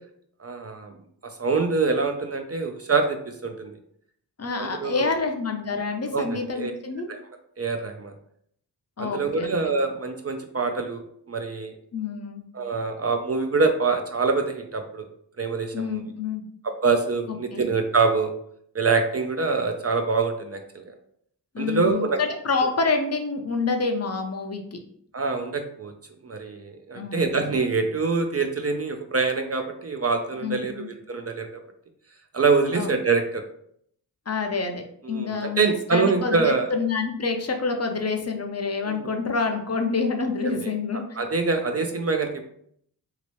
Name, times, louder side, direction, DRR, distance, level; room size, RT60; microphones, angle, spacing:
voice 1, 0.4-0.9 1.2-3.7 4.6-5.1 6.1-6.7 7.1-7.2 7.6-8.1 9.0-11.0 11.3-11.7 12.5-15.0 15.4-16.0 16.6-18.3 18.7-20.8 21.6-22.2 25.1-25.9 26.2-31.6 32.3-33.4 35.0-36.7 38.8-39.1 40.4-42.5, right 4 dB, 35° right, 5 dB, 0.4 m, -25 dB
voice 2, 4.4-7.1 9.0-9.5 11.9-12.4 15.7-16.4 17.5-17.6 21.5-24.8 26.9-27.4 30.4-30.9 32.7-32.9 34.3-41.0, left 4 dB, 40° left, 4 dB, 0.5 m, -27 dB
3.0 x 2.8 x 3.0 m, 0.67 s
cardioid pair, 60°, 42 cm